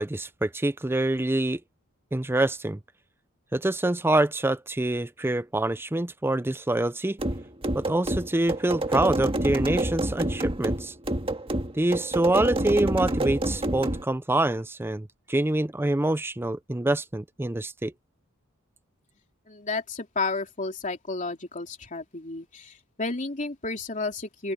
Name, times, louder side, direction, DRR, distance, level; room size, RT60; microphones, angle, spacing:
voice 1, 0.0-1.6 2.1-2.8 3.5-7.2 7.7-10.9 11.7-17.9, right 1 dB, 10° right, 0.5 m, -26 dB
sound 1, 7.2-14.0, right 1 dB, 25° right, 1.8 m, -28 dB
voice 2, 19.5-24.5, left 3 dB, 35° left, 3.1 m, -32 dB
open air
head